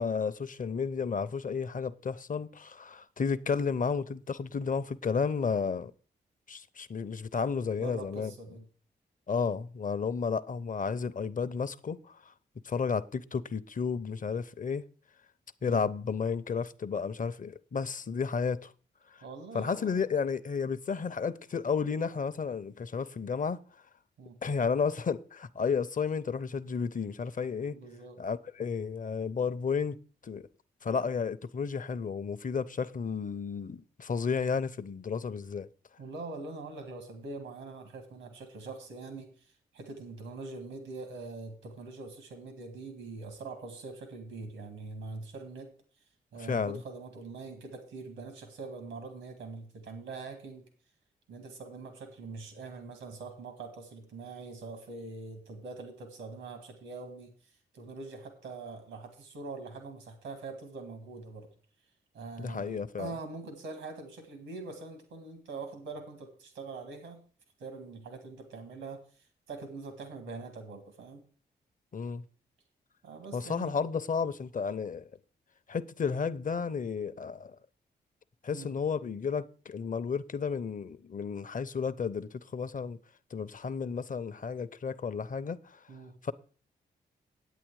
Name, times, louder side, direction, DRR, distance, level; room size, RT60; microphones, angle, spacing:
voice 1, 0.0-5.9 6.5-8.3 9.3-12.3 12.6-14.8 15.6-18.7 19.1-19.2 19.5-23.6 24.4-27.8 28.2-30.0 30.2-30.5 30.8-35.7 46.4-46.8 62.4-63.1 71.9-72.2 73.3-75.1 75.7-77.6 78.4-83.0 83.3-85.9 86.2-86.3, left 5 dB, 45° left, 0.7 m, -32 dB
voice 2, 7.8-8.6 15.6-15.8 19.2-20.1 24.2-24.3 27.7-28.2 36.0-45.7 46.3-50.6 51.3-61.5 62.1-67.2 67.6-71.2 73.0-73.8 78.5-78.7 85.9-86.1, right 3 dB, 90° right, 1.8 m, -43 dB
9.3 x 8.5 x 4.7 m
supercardioid pair, 45°, 19 cm